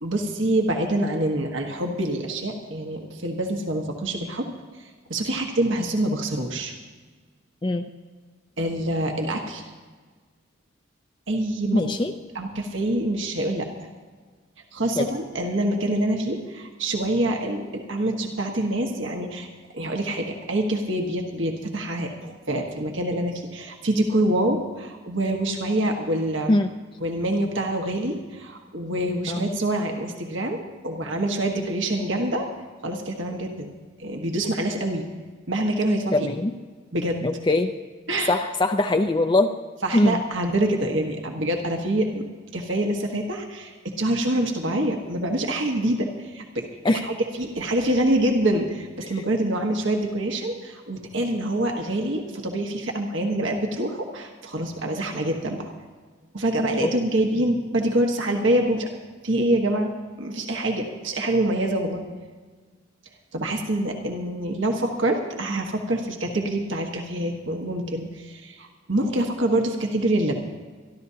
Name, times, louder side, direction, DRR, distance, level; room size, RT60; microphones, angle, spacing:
voice 1, 0.0-4.5 4.8-6.7 8.6-9.6 11.3-11.8 12.3-13.9 14.7-19.5 19.7-26.5 27.0-30.6 30.8-32.5 32.8-33.7 34.0-35.0 35.5-36.3 36.9-37.3 38.1-38.4 39.8-42.2 42.5-55.7 56.3-58.9 59.2-59.9 60.2-62.0 63.3-70.3, right 1 dB, 70° right, 2 dB, 1.5 m, -26 dB
voice 2, 11.7-12.1 15.0-15.1 26.5-26.7 29.3-29.5 36.1-36.5 37.2-37.7 38.3-39.5 39.9-40.2 46.8-47.0 56.8-56.9, left 2 dB, 25° left, 6 dB, 0.5 m, -22 dB
26.0 x 12.0 x 2.9 m, 1.4 s
head